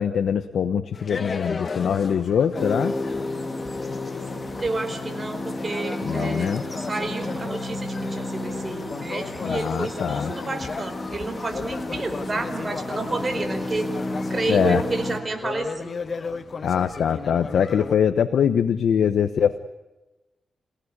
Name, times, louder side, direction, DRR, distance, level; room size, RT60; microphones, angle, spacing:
voice 1, 0.0-2.9 6.0-6.6 9.4-10.3 14.5-14.8 16.6-19.6, left 8 dB, 80° left, 10 dB, 1.0 m, -23 dB
sound 1, 0.9-17.9, left 4 dB, 45° left, 1.3 m, -36 dB
sound 2, 2.5-15.2, left 2 dB, 25° left, 3.1 m, -32 dB
voice 2, 4.6-13.9 14.3-16.0, right 3 dB, 30° right, 6 dB, 4.8 m, -30 dB
29.0 x 17.5 x 9.9 m, 1.1 s
wide cardioid pair, 110°, 0 cm